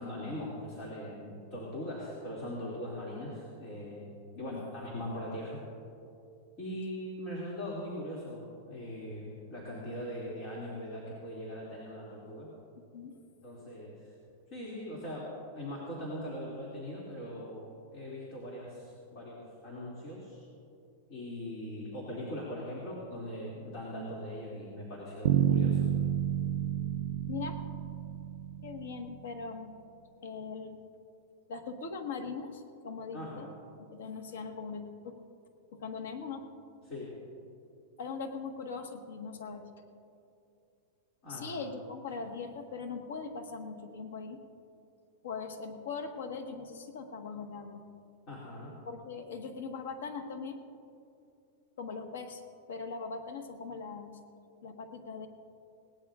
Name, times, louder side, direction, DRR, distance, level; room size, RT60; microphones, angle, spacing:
voice 1, 0.0-4.1 4.4-5.6 6.6-12.5 13.4-14.1 14.5-15.3 15.5-20.4 21.1-25.8 33.1-33.4 36.8-37.1 41.2-41.5 48.3-48.8, equal, 30° left, -5 dB, 2.4 m, -40 dB
voice 2, 4.3-4.6 12.9-13.2 27.3-27.6 28.6-29.7 30.2-30.8 31.5-33.5 33.8-35.2 35.7-36.5 38.0-39.7 41.3-44.4 45.2-47.8 48.8-50.6 51.8-52.4 52.7-54.2 54.6-55.3, left 5 dB, 85° left, 6 dB, 1.4 m, -40 dB
Bass guitar, 25.3-29.3, right 10 dB, 75° right, 0.3 m, -30 dB
21.0 x 17.5 x 2.5 m, 2.6 s
supercardioid pair, 165°, 0 cm